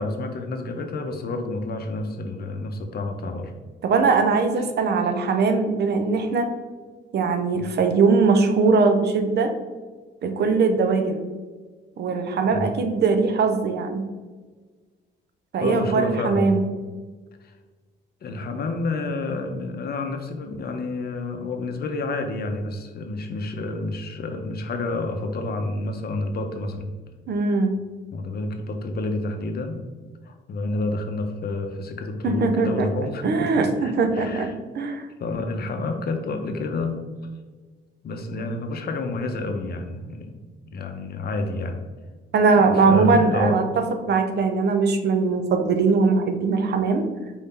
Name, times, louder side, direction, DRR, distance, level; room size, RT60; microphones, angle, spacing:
voice 1, 0.0-3.5 7.5-7.7 12.4-12.7 15.6-16.6 17.4-17.5 18.2-26.9 28.1-29.8 30.2-34.5 35.2-37.0 38.0-40.4 40.7-41.8 42.6-43.6, left 2 dB, 50° left, 5 dB, 0.7 m, -29 dB
voice 2, 3.8-6.5 7.1-9.5 10.2-11.2 12.0-14.0 15.5-16.6 27.3-27.7 32.2-32.9 33.2-35.1 42.3-43.6 44.1-47.1, right 4 dB, 55° right, 6 dB, 0.6 m, -21 dB
4.6 x 2.7 x 3.7 m, 1.4 s
cardioid pair, 90°, 20 cm